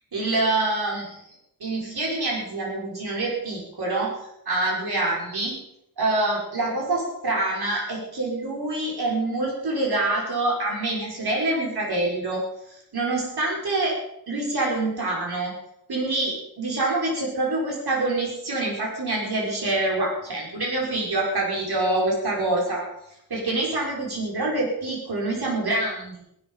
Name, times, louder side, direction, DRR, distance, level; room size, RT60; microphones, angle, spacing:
voice 1, 0.1-1.3 1.6-4.2 4.5-5.6 6.0-12.4 12.9-14.0 14.3-15.5 15.9-22.8 23.3-26.2, right 2 dB, 85° right, -3 dB, 6.1 m, -26 dB
18.5 x 13.0 x 5.8 m, 0.75 s
wide cardioid pair, 100°, 37 cm